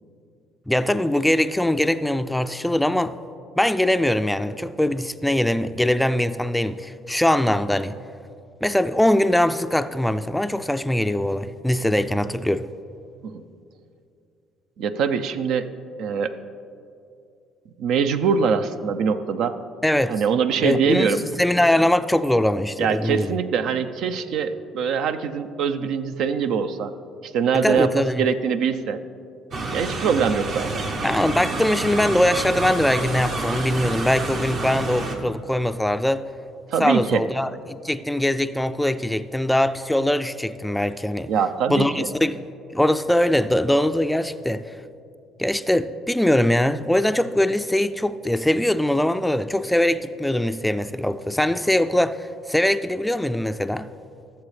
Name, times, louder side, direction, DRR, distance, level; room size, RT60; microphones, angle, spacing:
voice 1, 0.7-3.1 3.6-8.0 8.6-12.7 19.8-20.2 20.6-23.3 27.6-28.2 31.0-36.2 36.8-41.3 41.7-42.4 42.7-44.7 45.4-53.9, left 1 dB, 5° left, 0.3 m, -22 dB
voice 2, 14.8-15.7 16.0-16.3 17.8-19.6 20.1-21.2 22.8-26.9 27.2-29.0 29.7-30.8 36.7-37.2 41.3-42.1, right 6 dB, 70° right, 0.5 m, -23 dB
sound 1, 29.5-35.2, right 2 dB, 55° right, 1.1 m, -28 dB
16.0 x 7.2 x 3.3 m
supercardioid pair, 75°, 0 cm